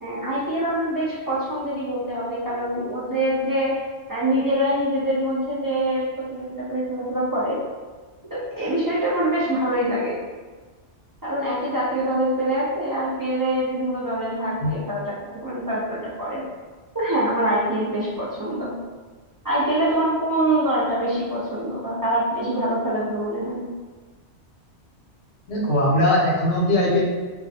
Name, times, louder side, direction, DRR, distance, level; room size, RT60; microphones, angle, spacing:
voice 1, 0.0-3.8 4.1-7.6 8.3-10.2 11.2-16.4 16.9-18.7 19.4-23.7, right 1 dB, 30° right, -9 dB, 0.3 m, -24 dB
voice 2, 25.5-27.0, left 1 dB, 65° left, -5 dB, 0.9 m, -20 dB
2.4 x 2.1 x 2.7 m, 1.4 s
omnidirectional pair, 1.2 m